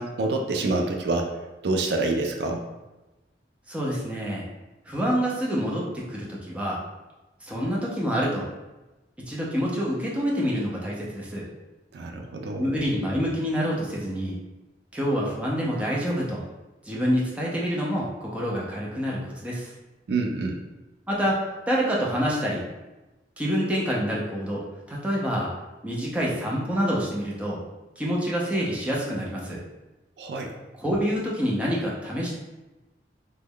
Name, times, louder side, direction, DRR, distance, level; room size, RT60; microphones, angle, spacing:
voice 1, 0.0-2.7 11.9-12.7 20.1-20.6 30.2-30.6, right 2 dB, 70° right, 3 dB, 0.4 m, -27 dB
voice 2, 3.7-4.4 4.9-6.8 7.4-8.5 9.2-11.5 12.6-14.3 14.9-16.4 16.9-19.7 21.1-22.6 23.4-24.6 24.9-25.5 25.8-27.6 28.0-29.6 30.8-32.3, equal, 10° right, -5 dB, 0.5 m, -27 dB
3.0 x 2.2 x 3.5 m, 1.1 s
head